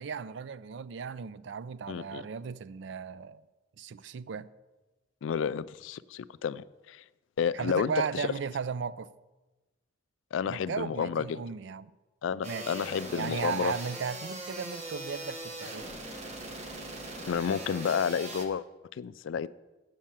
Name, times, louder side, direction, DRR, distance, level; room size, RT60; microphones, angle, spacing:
voice 1, 0.0-3.4 3.8-4.5 7.5-9.1 10.5-11.9 12.5-12.8 13.1-15.9, right 6 dB, 70° right, 0.4 m, -36 dB
voice 2, 1.9-2.2 5.2-7.0 7.4-8.2 10.3-11.4 12.2-13.7 17.3-18.6 19.0-19.5, left 7 dB, 80° left, 0.3 m, -31 dB
sound 1, 12.4-18.5, right 1 dB, 35° right, 1.1 m, -40 dB
8.4 x 6.5 x 7.4 m
head